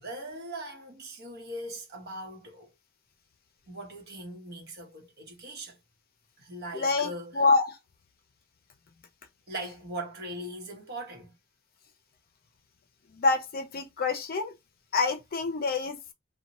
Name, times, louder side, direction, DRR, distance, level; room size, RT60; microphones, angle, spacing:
voice 1, 0.0-2.7 3.7-5.8 6.4-7.4 9.5-11.3, right 1 dB, 50° right, 1.0 m, -40 dB
voice 2, 6.7-7.7 13.2-14.5 14.9-16.0, left 3 dB, 45° left, 0.5 m, -26 dB
2.7 x 2.2 x 2.9 m
head